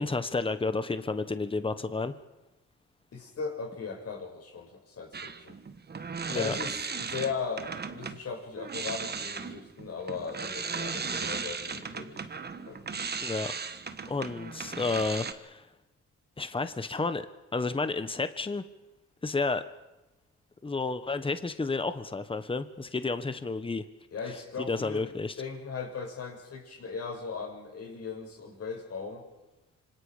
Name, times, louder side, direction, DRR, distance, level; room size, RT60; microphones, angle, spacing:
voice 1, 0.0-2.1 6.3-6.5 13.2-13.5 14.1-15.6 16.4-17.3 17.5-18.6 19.2-19.6 20.6-23.8 24.7-25.3, left 3 dB, 15° left, 11 dB, 1.4 m, -31 dB
voice 2, 3.1-5.6 6.3-12.3 12.7-12.9 24.1-25.1 25.4-29.2, left 5 dB, 55° left, 1 dB, 7.0 m, -38 dB
sound 1, 5.1-8.2 8.6-15.3, right 5 dB, 35° right, 1.5 m, -36 dB
26.5 x 25.0 x 5.2 m, 1.0 s
cardioid pair, 90°, 30 cm